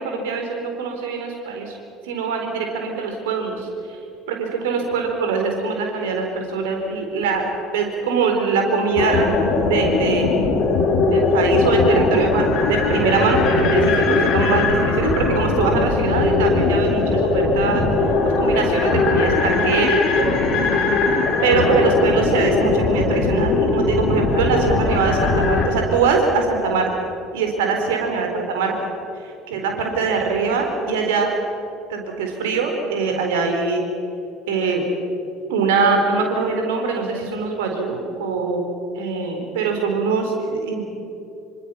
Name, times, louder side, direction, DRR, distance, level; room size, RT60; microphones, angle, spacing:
voice 1, 0.0-1.7 2.0-3.7 4.3-9.3 9.6-10.4 11.1-17.9 18.2-20.8 21.4-26.9 27.3-28.7 29.5-31.3 31.9-33.8 34.5-34.8 35.5-38.6 38.9-40.8, right 4 dB, 65° right, 3 dB, 4.3 m, -22 dB
sound 1, 9.0-25.7, left 3 dB, 50° left, 3.9 m, -19 dB
26.5 x 25.0 x 5.8 m, 2.8 s
figure-of-eight pair, 60°, 0 cm